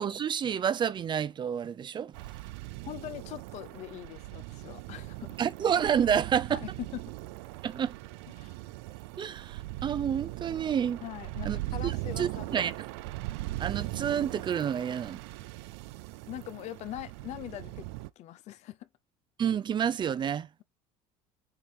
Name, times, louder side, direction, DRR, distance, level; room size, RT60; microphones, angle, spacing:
voice 1, 0.0-2.1 5.4-6.6 7.6-7.9 9.2-11.0 11.4-11.6 11.8-12.7 13.6-15.2 19.4-20.5, right 8 dB, 35° right, 0.6 m, -29 dB
sound 1, 2.1-18.1, right 18 dB, 80° right, 0.5 m, -40 dB
voice 2, 2.8-5.4 6.5-7.0 8.4-8.6 11.0-12.8 16.3-17.9 18.2-18.9, left 13 dB, 55° left, 0.8 m, -42 dB
7.1 x 2.7 x 5.3 m
supercardioid pair, 95°, 14 cm